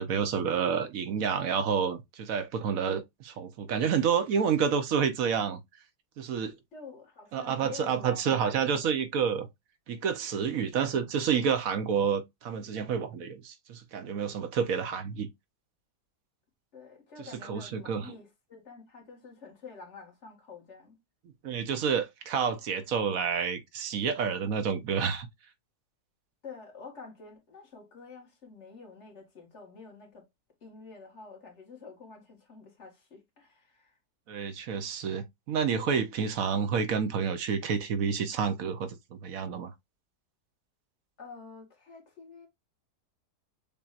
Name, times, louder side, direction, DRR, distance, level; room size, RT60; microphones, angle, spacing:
voice 1, 0.0-5.6 6.2-6.6 7.3-9.5 9.9-15.3 17.4-18.1 21.4-25.3 34.3-39.7, right 7 dB, 60° right, 1.1 m, -29 dB
voice 2, 6.7-9.0 16.7-21.0 26.4-30.3 30.6-34.0 41.2-42.5, left 4 dB, 45° left, 2.0 m, -48 dB
6.9 x 2.7 x 2.4 m
omnidirectional pair, 1.8 m